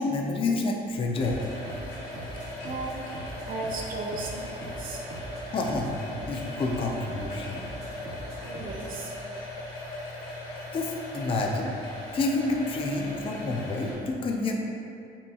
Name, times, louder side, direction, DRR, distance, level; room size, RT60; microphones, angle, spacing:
voice 1, 0.0-1.4 5.5-7.6 10.7-11.8 12.1-14.5, left 3 dB, 30° left, 1 dB, 0.4 m, -29 dB
sound 1, 1.1-13.9, left 1 dB, 80° left, 1.1 m, -39 dB
sound 2, 1.2-8.9, right 1 dB, 75° right, 0.8 m, -42 dB
voice 2, 2.3-5.5 7.4-7.6 7.9-8.0 8.4-9.5, right 2 dB, 55° right, 0 dB, 0.4 m, -38 dB
5.5 x 2.2 x 2.7 m, 2.6 s
cardioid pair, 110°, 17 cm